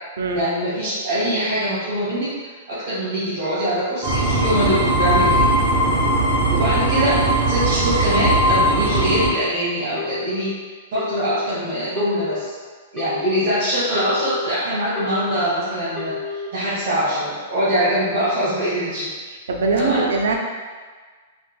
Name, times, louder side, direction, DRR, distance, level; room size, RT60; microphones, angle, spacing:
voice 1, 0.3-5.5 6.5-10.5 10.9-12.5 12.9-19.1 19.7-20.0, equal, 55° right, -12 dB, 1.4 m, -23 dB
sound 1, 4.0-9.3, right 1 dB, 30° right, 0.8 m, -19 dB
Telephone, 9.0-9.5 10.0-10.5 11.0-11.5 12.0-12.5 13.0-13.5 14.0-14.5 15.0-15.5 16.0-16.5, left 5 dB, 5° left, 0.7 m, -31 dB
voice 2, 19.5-20.4, right 4 dB, 80° right, 1 dB, 0.5 m, -21 dB
4.3 x 2.2 x 2.3 m, 1.5 s
hypercardioid pair, 160°, 0 cm